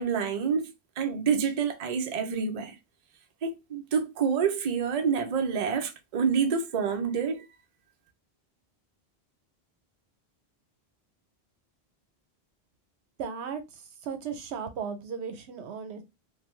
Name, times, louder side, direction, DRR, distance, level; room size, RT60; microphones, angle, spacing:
voice 1, 0.0-2.7 3.4-7.4, right 6 dB, 50° right, 0.5 m, -28 dB
voice 2, 13.2-13.6 14.0-16.0, right 6 dB, 90° right, 0.9 m, -35 dB
2.6 x 2.2 x 3.0 m
omnidirectional pair, 1.1 m